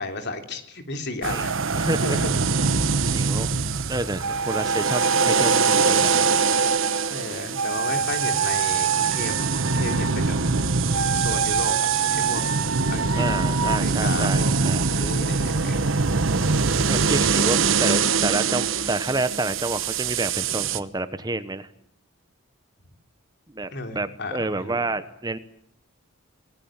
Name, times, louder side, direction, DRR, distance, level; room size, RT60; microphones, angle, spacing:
voice 1, 0.0-2.7 7.1-10.4 11.1-11.8 12.1-12.4 12.9-13.2 13.6-14.5 14.9-15.9 23.7-24.8, left 2 dB, 55° left, 6 dB, 3.3 m, -33 dB
sound 1, 1.2-20.8, right 5 dB, 65° right, 1.2 m, -24 dB
voice 2, 1.7-2.2 3.1-3.6 3.9-5.0 5.3-6.2 13.2-14.8 16.9-21.7 23.5-25.4, right 2 dB, 20° right, 12 dB, 1.0 m, -29 dB
sound 2, 4.2-7.1 7.5-10.2 10.9-13.8, right 5 dB, 80° right, 1.0 m, -26 dB
27.5 x 20.0 x 9.0 m, 0.70 s
head